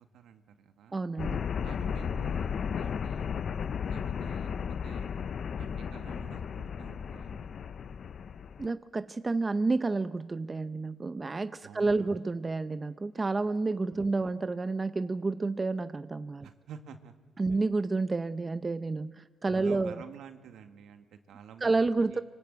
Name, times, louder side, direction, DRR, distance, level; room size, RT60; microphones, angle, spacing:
voice 1, 0.0-1.0 1.6-3.3 3.8-4.5 4.8-5.1 5.6-7.7 11.6-12.2 13.9-14.1 16.4-17.1 17.5-17.6 19.5-22.2, right 8 dB, 75° right, 7 dB, 2.1 m, -50 dB
voice 2, 0.9-1.4 8.6-16.5 17.4-20.0 21.6-22.2, right 3 dB, 25° right, 11 dB, 0.8 m, -30 dB
sound 1, 1.2-8.7, left 7 dB, 55° left, 0.7 m, -34 dB
26.0 x 24.5 x 8.2 m, 1.4 s
cardioid pair, 90°, 0 cm